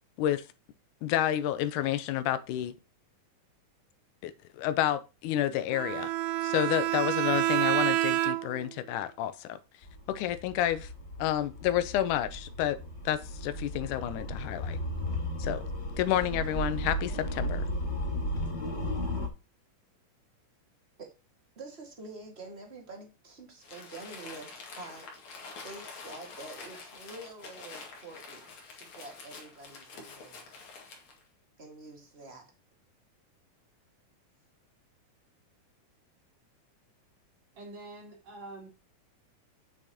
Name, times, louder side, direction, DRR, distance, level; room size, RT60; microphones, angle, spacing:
voice 1, 1.0-2.7 4.2-6.1 6.4-9.6 10.1-10.9 11.2-12.8 13.1-14.8 15.4-15.6 16.0-17.6, left 12 dB, 85° left, 2.2 m, -30 dB
Bowed string instrument, 5.7-8.7, right 14 dB, 80° right, 1.7 m, -28 dB
sound 1, 9.8-19.3, equal, 40° left, 0.9 m, -35 dB
voice 2, 21.5-25.1 25.6-28.4 28.7-30.5 31.6-32.5, right 2 dB, 25° right, 1.7 m, -47 dB
Crumpling crinkling, 23.6-31.2, left 4 dB, 60° left, 3.1 m, -47 dB
voice 3, 37.5-38.7, right 2 dB, 45° right, 3.3 m, -45 dB
8.6 x 6.3 x 2.9 m
omnidirectional pair, 3.7 m